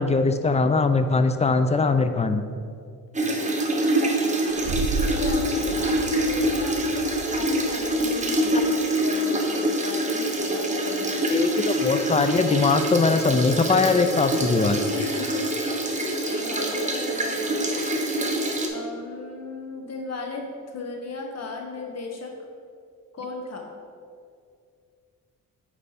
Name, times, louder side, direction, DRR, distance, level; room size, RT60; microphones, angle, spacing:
voice 1, 0.0-2.4 11.3-14.8, left 4 dB, 20° left, 9 dB, 0.4 m, -21 dB
sound 1, 3.1-18.7, right 1 dB, 20° right, 1.0 m, -25 dB
voice 2, 3.3-4.4 5.1-11.4 14.9-17.8 18.7-22.3 23.1-23.7, left 3 dB, 50° left, 2 dB, 1.3 m, -36 dB
sound 2, 4.5-8.9, right 5 dB, 80° right, 0.7 m, -33 dB
8.5 x 4.7 x 4.2 m, 2.3 s
cardioid pair, 100°, 34 cm